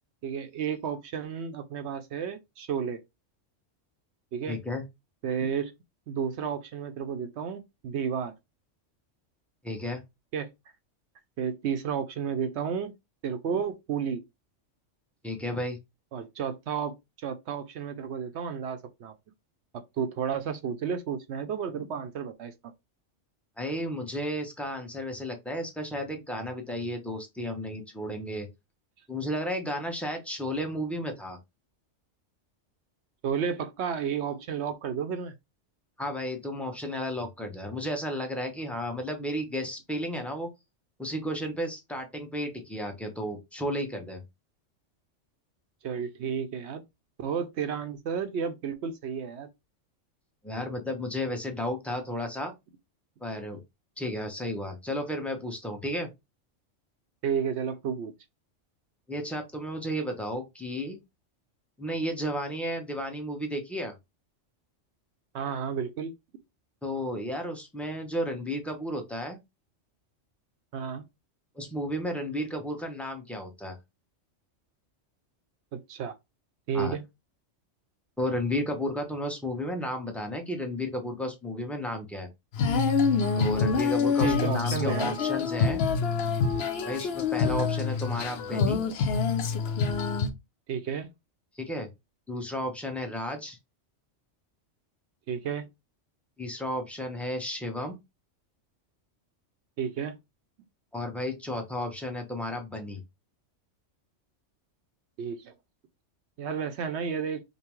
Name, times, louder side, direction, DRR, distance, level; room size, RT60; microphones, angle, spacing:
voice 1, 0.2-3.0 4.3-4.6 5.2-5.7 6.1-8.3 10.3-10.5 11.4-12.9 13.2-14.2 16.1-19.1 19.7-22.5 33.2-35.3 45.8-46.8 47.2-49.5 57.2-58.1 65.3-66.1 70.7-71.0 75.7-76.1 76.7-77.0 84.2-85.1 90.7-91.1 95.3-95.7 99.8-100.2 105.2-105.5 106.4-107.4, right 7 dB, 70° right, 0.8 m, -32 dB
voice 2, 4.5-4.8 9.6-10.0 15.2-15.8 23.6-28.5 29.1-31.4 36.0-40.5 41.0-44.2 50.4-52.5 53.2-53.6 54.0-56.1 59.1-61.0 61.8-63.9 66.8-69.4 71.6-73.8 76.7-77.0 78.2-82.3 83.4-85.8 86.9-88.8 91.5-91.9 92.3-93.6 96.4-98.0 100.9-103.0, left 1 dB, ahead, 0.6 m, -33 dB
Female singing, 82.5-90.3, left 5 dB, 65° left, 0.8 m, -26 dB
5.3 x 2.1 x 3.0 m
omnidirectional pair, 1.3 m